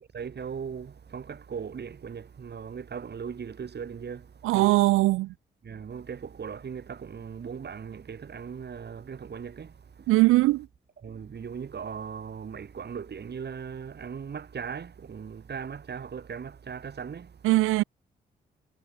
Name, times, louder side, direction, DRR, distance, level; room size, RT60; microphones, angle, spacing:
voice 1, 0.1-4.7 5.6-10.1 11.0-17.4, right 6 dB, 50° right, 3.1 m, -38 dB
voice 2, 4.4-5.3 10.1-10.7 17.4-17.8, right 19 dB, 80° right, 0.6 m, -21 dB
hypercardioid pair, 45°, 21 cm